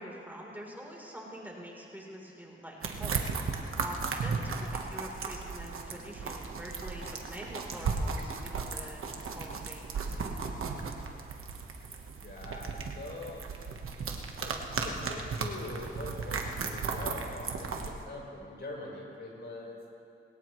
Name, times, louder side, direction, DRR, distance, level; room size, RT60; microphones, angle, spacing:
voice 1, 0.0-3.3 3.8-10.4, equal, 10° right, -2 dB, 3.7 m, -45 dB
sound 1, 2.8-17.9, right 4 dB, 90° right, 1.3 m, -36 dB
voice 2, 12.2-13.5 14.4-19.8, left 2 dB, 55° left, -3 dB, 4.6 m, -43 dB
21.5 x 17.5 x 3.2 m, 2.5 s
cardioid pair, 60°, 21 cm